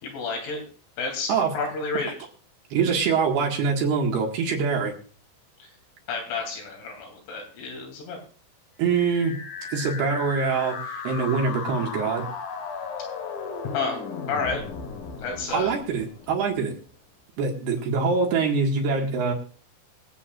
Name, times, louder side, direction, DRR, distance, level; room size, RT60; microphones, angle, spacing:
voice 1, 0.0-0.6 1.0-2.2 5.6-5.7 6.1-8.2 13.7-14.0 14.3-14.6 15.2-15.7, left 4 dB, 80° left, 1 dB, 5.7 m, -30 dB
voice 2, 2.7-4.9 8.8-9.4 9.7-12.3 15.5-16.8 17.4-19.3, right 5 dB, 65° right, 1 dB, 3.5 m, -24 dB
sound 1, 8.8-16.8, left 5 dB, 60° left, 2.8 m, -36 dB
25.0 x 8.5 x 2.5 m, 0.41 s
omnidirectional pair, 5.6 m